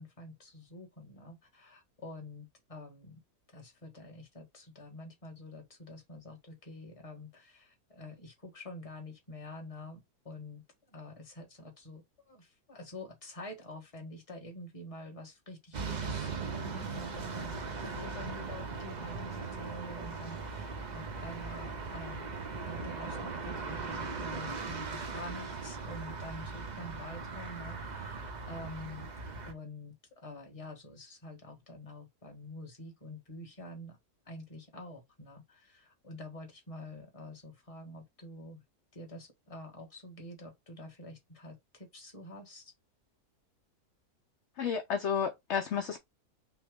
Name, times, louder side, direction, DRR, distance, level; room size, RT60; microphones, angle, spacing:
voice 1, 0.0-3.2 3.5-10.0 10.2-10.6 10.9-22.3 22.6-29.1 29.5-34.0 34.3-38.6 38.9-42.7, left 1 dB, 25° left, 1.3 m, -47 dB
sound 1, 15.7-29.5, right 4 dB, 40° right, 0.6 m, -39 dB
voice 2, 44.6-46.0, left 7 dB, 60° left, 0.9 m, -31 dB
5.9 x 2.1 x 3.6 m
omnidirectional pair, 1.6 m